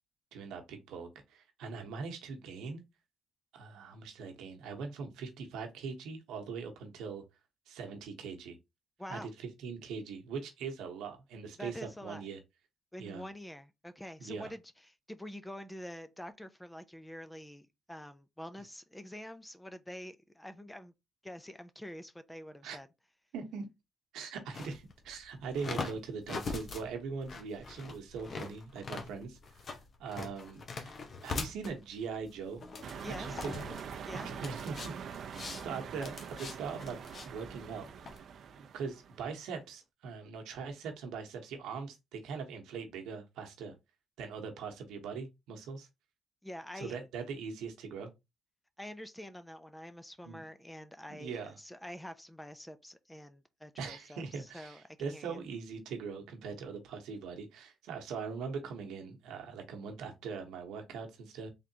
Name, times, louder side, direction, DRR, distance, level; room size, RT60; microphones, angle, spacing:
voice 1, 0.3-2.8 3.5-7.2 7.7-8.6 9.1-12.4 13.0-13.3 14.2-14.5 22.6-22.8 23.3-23.6 24.1-31.0 31.2-32.7 33.2-33.7 33.9-35.0 35.6-37.9 38.5-43.7 44.2-45.9 46.7-48.1 50.2-50.4 51.1-51.6 53.8-61.5, right 5 dB, 90° right, 1.0 m, -41 dB
voice 2, 9.0-9.3 11.6-12.2 12.9-20.9 21.2-22.9 33.0-33.4 34.1-34.3 46.4-47.0 48.8-55.4, left 1 dB, 10° left, 0.5 m, -46 dB
sound 1, 24.5-38.2, left 4 dB, 50° left, 0.8 m, -43 dB
sound 2, 32.8-39.4, right 7 dB, 65° right, 0.5 m, -44 dB
3.7 x 3.4 x 2.8 m
cardioid pair, 90°, 0 cm